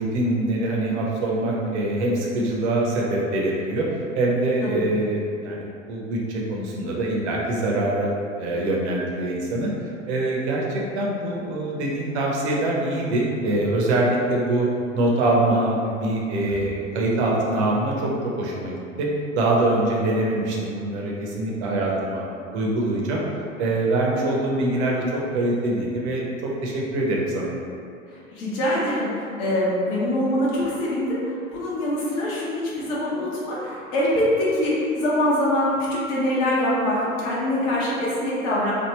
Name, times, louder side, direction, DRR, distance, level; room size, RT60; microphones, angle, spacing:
voice 1, 0.0-14.7 14.9-19.1 19.3-22.2 22.5-23.2 23.6-27.5, right 2 dB, 55° right, -3 dB, 0.8 m, -24 dB
voice 2, 28.1-38.7, left 1 dB, 40° left, -7 dB, 0.9 m, -24 dB
3.4 x 2.2 x 3.0 m, 2.5 s
figure-of-eight pair, 90°, 40 cm